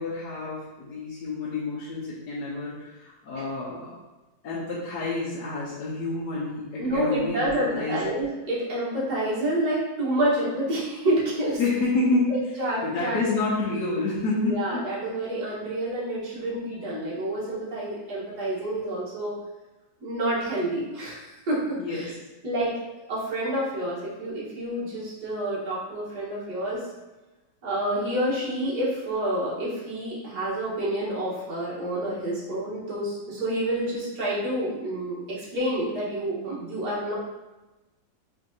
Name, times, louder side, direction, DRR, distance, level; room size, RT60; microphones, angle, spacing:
voice 1, 0.0-3.9 4.4-7.5 7.7-8.0 11.6-14.8 21.8-22.1, left 3 dB, 65° left, -8 dB, 1.4 m, -28 dB
voice 2, 6.8-11.6 12.3-13.2 14.4-19.3 20.0-22.1 22.4-22.7 23.1-26.8 27.6-37.1, right 1 dB, 60° right, -7 dB, 1.9 m, -28 dB
4.5 x 3.7 x 2.7 m, 1.1 s
omnidirectional pair, 2.0 m